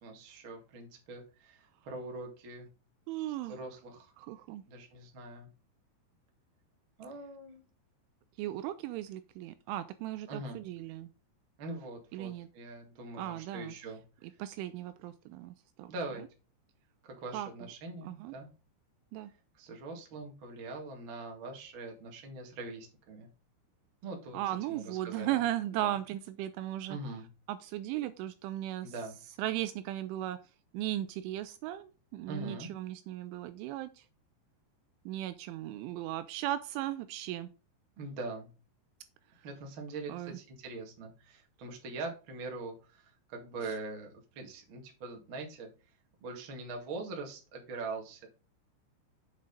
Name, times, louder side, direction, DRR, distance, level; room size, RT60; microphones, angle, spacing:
voice 1, 0.0-2.7 3.3-4.1 4.7-5.5 7.0-7.6 10.3-10.6 11.6-14.0 15.9-16.2 17.0-18.5 19.5-23.3 24.0-25.4 25.8-25.9 26.9-27.2 28.8-29.2 32.3-32.7 38.0-38.5 39.4-45.7 46.2-48.3, right 3 dB, 60° right, 2 dB, 1.3 m, -43 dB
voice 2, 3.1-3.6 4.3-4.6 8.4-11.1 12.1-12.5 13.2-13.7 14.4-15.9 17.3-17.5 18.0-18.3 19.1-19.3 24.3-27.0 27.5-28.9 29.4-30.4 30.7-33.9 35.1-37.5 40.1-40.3, right 13 dB, 85° right, 12 dB, 2.8 m, -36 dB
7.6 x 6.2 x 3.9 m, 0.32 s
omnidirectional pair, 5.8 m